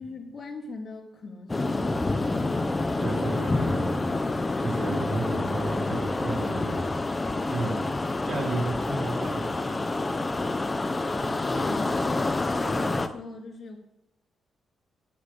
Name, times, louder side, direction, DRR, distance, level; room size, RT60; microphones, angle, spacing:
voice 1, 0.0-2.5 11.4-13.8, left 3 dB, 40° left, 1 dB, 3.3 m, -40 dB
sound 1, 1.5-13.1, left 2 dB, 15° left, 0.9 m, -28 dB
sound 2, 1.7-3.8 4.2-4.9 5.3-8.3 8.6-11.0, equal, 5° right, 4.7 m, -49 dB
voice 2, 3.0-4.1 4.6-6.8 7.5-7.8 8.3-9.8, right 2 dB, 55° right, 0 dB, 5.4 m, -32 dB
12.0 x 11.0 x 8.6 m, 0.91 s
wide cardioid pair, 160°, 0 cm